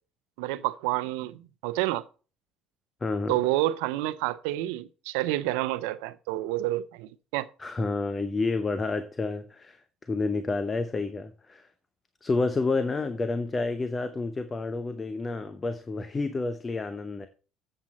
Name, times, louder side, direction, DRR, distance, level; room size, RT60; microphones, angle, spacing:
voice 1, 0.4-2.0 3.3-7.5, right 16 dB, 85° right, 0.6 m, -29 dB
voice 2, 3.0-3.4 7.6-9.8 10.1-11.7 12.2-17.3, left 3 dB, 25° left, 0.8 m, -29 dB
7.6 x 7.4 x 4.2 m
supercardioid pair, 80°, 0 cm